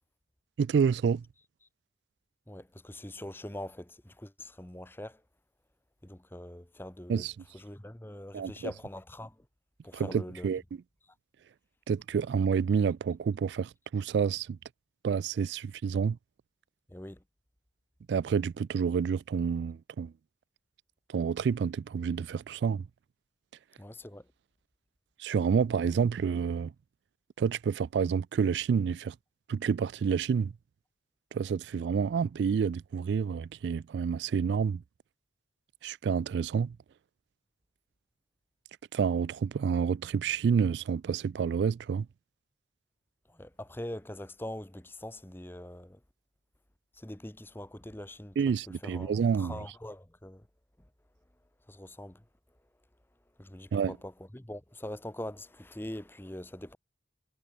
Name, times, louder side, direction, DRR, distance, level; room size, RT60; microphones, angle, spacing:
voice 1, 0.6-1.2 7.1-7.3 8.3-8.7 9.9-10.6 11.9-14.6 15.0-16.2 18.1-20.1 21.1-22.8 25.2-26.7 27.4-29.1 29.5-30.5 31.3-34.8 35.8-36.8 38.9-42.1 48.4-49.6 53.7-54.0, right 6 dB, 70° right, 0.3 m, -29 dB
voice 2, 2.5-5.2 6.0-7.3 7.5-9.5 9.8-10.5 16.9-17.2 23.8-24.3 43.3-46.0 46.9-48.4 48.7-50.5 51.7-52.2 53.4-56.8, left 1 dB, 10° left, 1.0 m, -43 dB
head